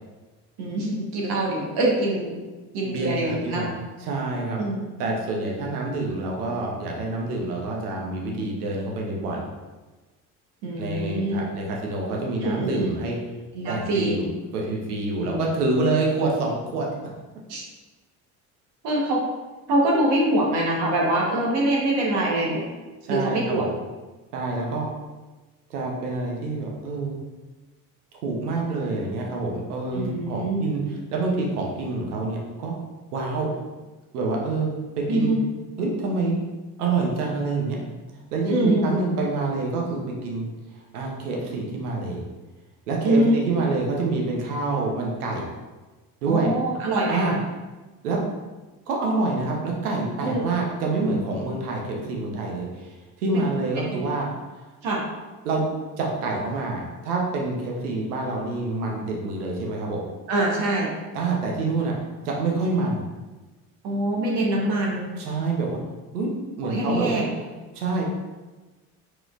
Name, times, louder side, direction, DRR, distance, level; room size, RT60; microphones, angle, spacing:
voice 1, 0.6-2.3 2.7-3.7 4.6-4.8 10.6-11.5 12.4-12.9 13.5-14.2 15.2-15.6 17.5-17.6 18.8-19.2 19.7-22.6 23.1-23.7 29.9-30.6 35.1-35.4 38.5-38.9 43.0-43.4 46.3-47.4 50.2-50.4 53.3-53.5 53.9-54.1 54.8-55.0 60.3-60.9 63.8-65.1 66.6-67.3, right 1 dB, 60° right, -3 dB, 1.3 m, -24 dB
voice 2, 2.8-3.7 4.0-4.6 5.0-9.4 10.8-13.2 13.7-14.2 14.5-16.9 23.0-23.7 24.3-24.9 25.7-27.2 28.2-30.8 31.1-32.7 33.1-33.6 34.1-34.7 35.0-35.3 35.8-36.4 36.8-37.8 38.3-40.5 40.9-42.2 42.9-45.4 46.2-46.5 47.1-47.4 48.0-48.2 48.9-54.3 55.4-55.7 56.0-60.1 61.1-61.9 62.2-63.0 65.2-65.8 66.1-66.3 66.6-67.2 67.7-68.1, right 3 dB, 80° right, -1 dB, 1.0 m, -27 dB
4.5 x 4.1 x 2.5 m, 1.2 s
hypercardioid pair, 60°, 45 cm